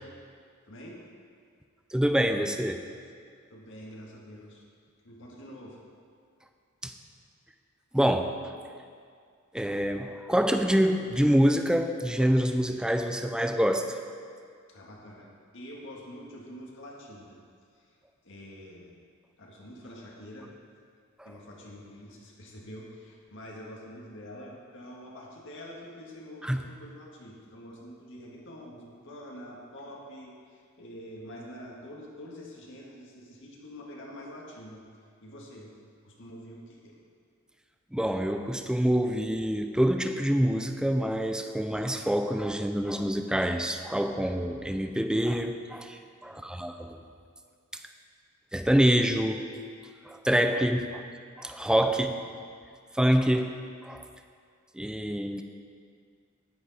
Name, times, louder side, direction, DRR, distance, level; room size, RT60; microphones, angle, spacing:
voice 1, 0.7-1.0 3.5-4.6 5.0-5.8 14.7-17.4 17.7-18.0 18.2-18.9 19.4-20.5 21.3-34.8 35.2-37.0 46.3-46.7 51.9-52.2, equal, 65° left, -2 dB, 1.8 m, -46 dB
voice 2, 1.9-2.8 6.8-6.9 7.9-8.5 9.5-14.0 21.2-21.3 26.4-26.6 37.9-47.0 48.5-49.4 50.1-51.0 51.4-52.1 52.9-53.6 53.8-54.1 54.7-55.4, equal, 5° right, 6 dB, 0.5 m, -26 dB
10.0 x 10.0 x 4.2 m, 2.2 s
head